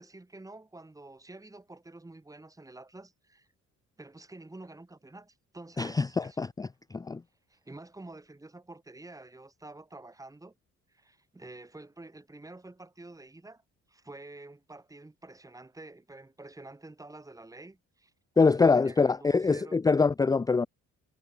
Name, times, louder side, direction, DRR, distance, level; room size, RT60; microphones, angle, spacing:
voice 1, 0.0-3.5 4.0-6.4 7.5-10.5 10.9-13.6 13.9-18.1 18.4-19.8, right 2 dB, 10° right, 5.3 m, -48 dB
voice 2, 5.8-6.7 6.9-7.2 18.4-20.7, left 4 dB, 10° left, 0.5 m, -24 dB
cardioid pair, 135°, 30 cm